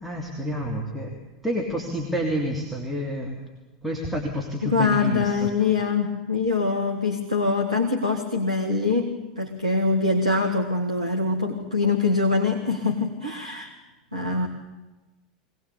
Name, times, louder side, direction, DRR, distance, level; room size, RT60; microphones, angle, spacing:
voice 1, 0.0-1.1 1.4-3.4 3.8-5.5, equal, ahead, -1 dB, 3.2 m, -29 dB
voice 2, 4.6-13.7 14.1-14.5, left 3 dB, 85° right, 1 dB, 1.9 m, -24 dB
23.5 x 19.0 x 8.5 m, 1.1 s
figure-of-eight pair, 85°, 4 cm